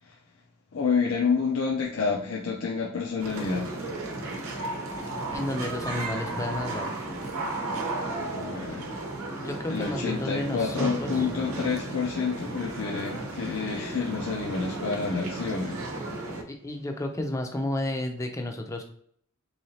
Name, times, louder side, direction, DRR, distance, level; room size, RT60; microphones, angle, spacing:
voice 1, 0.7-3.7 8.2-8.9 9.7-15.8, left 5 dB, 70° left, -2 dB, 0.6 m, -29 dB
sound 1, 3.2-16.4, right 2 dB, 85° right, 0.7 m, -34 dB
voice 2, 5.3-6.9 9.4-11.3 12.0-12.1 16.5-18.8, left 1 dB, 15° left, 4 dB, 0.5 m, -32 dB
3.8 x 3.1 x 2.8 m, 0.63 s
head